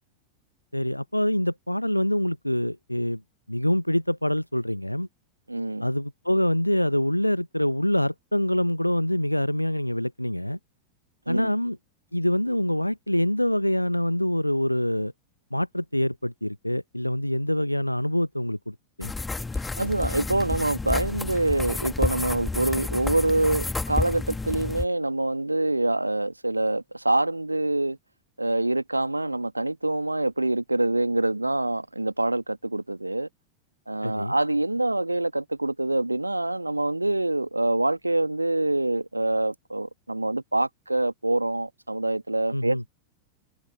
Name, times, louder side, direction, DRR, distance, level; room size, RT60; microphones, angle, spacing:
voice 1, 0.7-3.2 3.5-5.1 5.8-10.6 11.3-11.8 12.1-15.1 15.5-19.1 34.0-34.3 42.5-42.8, left 1 dB, 90° left, 0.7 m, -25 dB
voice 2, 5.5-5.9 11.3-11.5 19.8-28.0 28.4-33.3 33.9-42.9, right 2 dB, 85° right, 1.7 m, -25 dB
sound 1, 19.0-24.8, left 3 dB, 10° left, 2.0 m, -30 dB
figure-of-eight pair, 90°, 0 cm